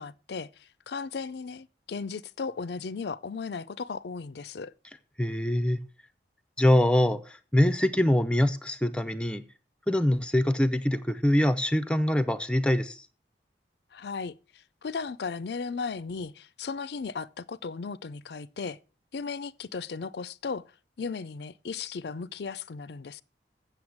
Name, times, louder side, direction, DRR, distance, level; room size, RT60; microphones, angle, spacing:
voice 1, 0.0-4.7 13.9-14.3 14.8-18.8 19.1-20.7 21.0-23.2, left 5 dB, 65° left, 0.4 m, -36 dB
voice 2, 5.2-5.8 6.6-9.4 9.9-13.1, left 1 dB, 5° left, 0.5 m, -24 dB
7.9 x 6.7 x 7.2 m
head